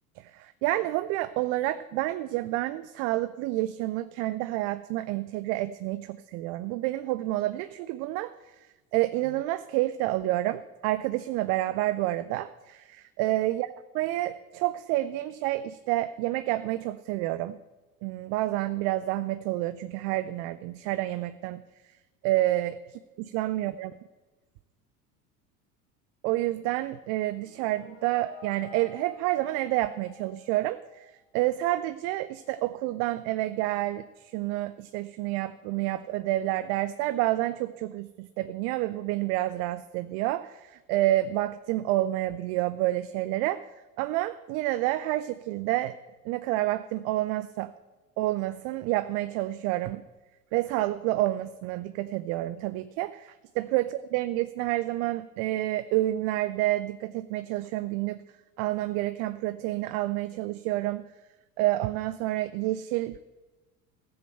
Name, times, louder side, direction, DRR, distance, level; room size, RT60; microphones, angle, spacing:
voice 1, 0.2-8.3 8.9-17.6 18.0-21.6 22.2-22.8 23.3-23.9 26.2-43.7 44.0-46.0 46.2-47.7 48.2-50.0 50.5-58.2 58.6-61.0 61.6-63.2, right 16 dB, 35° right, 14 dB, 0.4 m, -29 dB
sound 1, 27.3-31.2, left 5 dB, 60° left, 4.5 m, -50 dB
15.0 x 8.0 x 7.7 m, 1.2 s
figure-of-eight pair, 75°, 47 cm